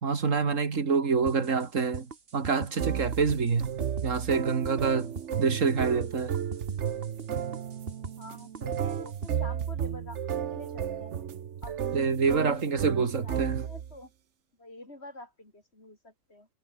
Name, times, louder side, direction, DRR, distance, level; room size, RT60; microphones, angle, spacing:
voice 1, 0.0-3.7 4.0-5.1 5.4-6.3 11.9-13.5, right 5 dB, 85° right, 2.3 m, -26 dB
sound 1, 1.3-9.3, right 5 dB, 50° right, 1.8 m, -41 dB
sound 2, 2.8-14.0, right 8 dB, 65° right, 1.2 m, -33 dB
voice 2, 8.2-11.2 11.6-11.8 12.3-14.1 14.6-16.5, left 2 dB, 55° left, 6.7 m, -47 dB
omnidirectional pair, 1.3 m